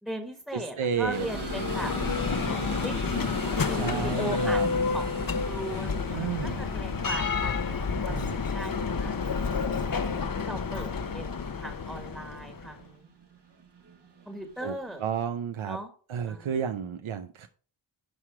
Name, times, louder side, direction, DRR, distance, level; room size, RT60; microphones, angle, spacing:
voice 1, 0.0-1.9 2.5-3.0 3.7-4.6 4.9-10.0 10.4-13.1 14.2-15.0 15.6-15.9 16.3-16.5, right 1 dB, ahead, 5 dB, 1.5 m, -39 dB
voice 2, 0.5-1.3 3.7-4.7 6.1-6.6 8.1-8.4 14.6-14.7 15.0-15.8 16.1-17.5, right 7 dB, 90° right, 8 dB, 0.8 m, -31 dB
Bell, 0.9-12.7, left 5 dB, 45° left, 0.9 m, -30 dB
sound 1, 1.1-15.1, right 4 dB, 60° right, 1.7 m, -43 dB
12.0 x 4.9 x 4.8 m, 0.41 s
wide cardioid pair, 85°, 46 cm